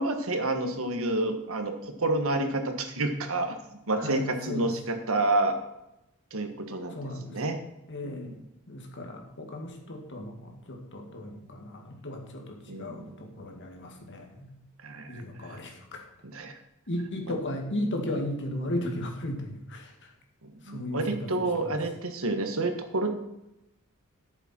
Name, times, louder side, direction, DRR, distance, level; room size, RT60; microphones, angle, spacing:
voice 1, 0.0-3.6 3.9-5.5 6.3-7.0 7.3-7.6 8.0-8.4 12.7-13.0 14.8-15.1 15.5-15.6 16.3-16.5 20.7-23.1, right 2 dB, 65° right, 6 dB, 1.4 m, -29 dB
voice 2, 4.0-4.7 6.9-7.3 7.9-8.3 8.7-13.1 13.4-14.5 15.1-16.0 16.9-20.1 20.7-21.2 21.6-21.7, left 1 dB, 55° left, 2 dB, 2.0 m, -35 dB
13.0 x 7.1 x 4.4 m, 0.88 s
head